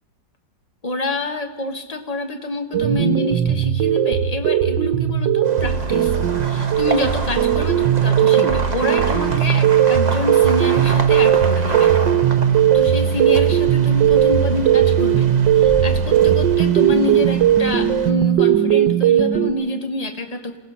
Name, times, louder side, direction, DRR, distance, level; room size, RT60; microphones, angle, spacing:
voice 1, 0.8-6.2 6.4-12.0 12.7-20.6, left 2 dB, 25° left, 6 dB, 1.4 m, -27 dB
sound 1, 2.7-19.5, right 10 dB, 85° right, 1.6 m, -17 dB
sound 2, 5.4-18.1, right 4 dB, 25° right, 1.1 m, -29 dB
28.0 x 17.0 x 5.6 m, 1.2 s
omnidirectional pair, 1.9 m